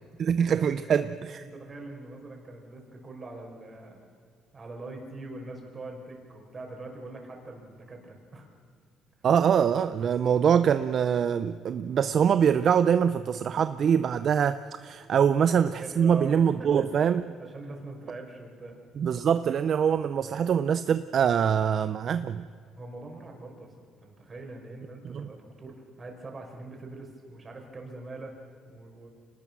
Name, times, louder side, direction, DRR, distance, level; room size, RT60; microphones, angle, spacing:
voice 1, 0.2-1.4 9.2-17.2 19.0-22.5 25.0-25.3, right 8 dB, 55° right, 12 dB, 0.6 m, -24 dB
voice 2, 1.4-4.1 4.5-8.5 15.2-15.5 15.8-17.0 17.4-18.8 22.8-29.1, right 2 dB, 30° right, 1 dB, 5.3 m, -43 dB
25.0 x 19.0 x 6.1 m, 2.2 s
cardioid pair, 95°, 0 cm